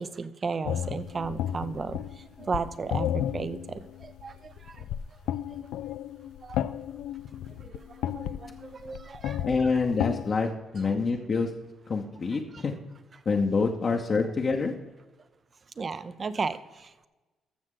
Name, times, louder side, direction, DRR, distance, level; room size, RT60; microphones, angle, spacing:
voice 1, 0.0-4.8 6.4-6.6 7.6-7.7 8.1-9.8 10.8-10.9 12.5-12.6 15.8-17.1, right 4 dB, 40° right, 13 dB, 0.6 m, -35 dB
sound 1, 0.7-10.3, left 11 dB, 90° left, 0.3 m, -33 dB
voice 2, 9.4-11.5 11.9-12.7 13.3-14.7, left 4 dB, 45° left, 1 dB, 0.9 m, -26 dB
14.5 x 6.3 x 3.8 m, 1.2 s
cardioid pair, 90°, 0 cm